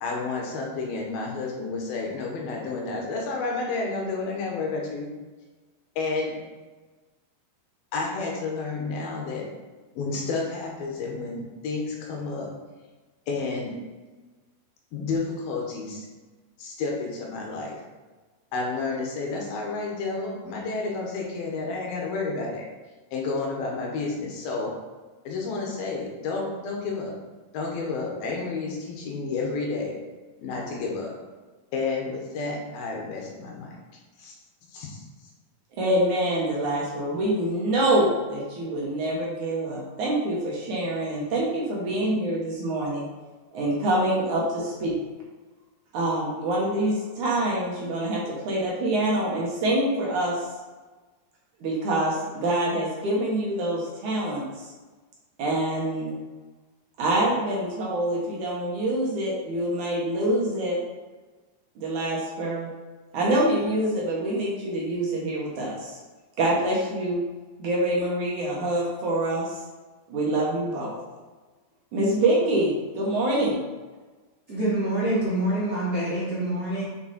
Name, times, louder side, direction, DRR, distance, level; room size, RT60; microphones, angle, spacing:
voice 1, 0.0-5.1 6.0-6.3 7.9-9.5 10.0-12.5 13.3-13.8 14.9-16.1 16.6-17.8 18.5-22.7 23.1-24.7 25.2-27.2 27.5-29.9 30.4-31.1 31.7-33.8 34.2-34.3 34.7-35.0, left 3 dB, 70° left, -1 dB, 3.0 m, -30 dB
voice 2, 35.8-43.1 43.5-44.9 45.9-50.5 51.6-54.4 55.4-56.1 57.0-60.8 61.8-62.7 63.1-65.9 66.4-67.2 67.6-69.5 70.1-70.9 71.9-73.6, right 1 dB, 60° right, -4 dB, 2.4 m, -25 dB
voice 3, 74.5-76.8, right 1 dB, 35° right, -9 dB, 1.6 m, -26 dB
6.9 x 6.6 x 4.3 m, 1.3 s
omnidirectional pair, 4.5 m